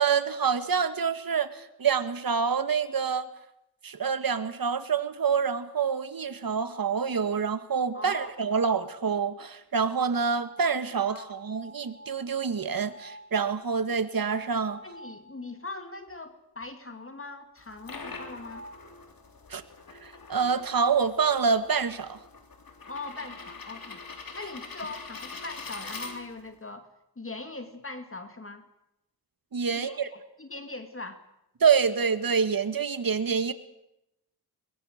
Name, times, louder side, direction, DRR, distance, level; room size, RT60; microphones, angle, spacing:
voice 1, 0.0-3.3 3.8-14.8 19.5-19.6 20.0-22.2 29.5-30.1 31.6-33.5, right 6 dB, 60° right, 11 dB, 1.7 m, -27 dB
sound 1, 6.3-7.4 7.9-8.8 10.0-15.7 16.1-16.2 16.6-16.7 18.3-18.9 21.1-21.2 21.4-21.8, right 1 dB, 40° right, 3.7 m, -48 dB
voice 2, 7.9-8.3 11.1-11.4 14.8-18.6 22.9-24.0 24.3-26.9 27.2-28.7 29.7-31.2, left 3 dB, 35° left, 7 dB, 2.3 m, -41 dB
sound 2, 17.6-26.6, left 4 dB, 60° left, 3.4 m, -44 dB
22.5 x 21.0 x 6.6 m, 0.87 s
cardioid pair, 55°, 39 cm